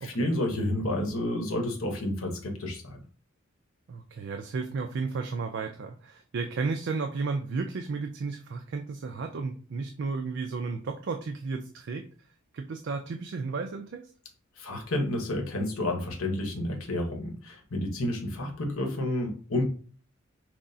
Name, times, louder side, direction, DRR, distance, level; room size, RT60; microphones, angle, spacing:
voice 1, 0.0-3.0 14.6-19.7, left 1 dB, 80° left, 2 dB, 1.0 m, -30 dB
voice 2, 3.9-12.1 12.5-14.1, right 4 dB, 60° right, 5 dB, 0.4 m, -33 dB
6.0 x 2.0 x 2.6 m, 0.40 s
head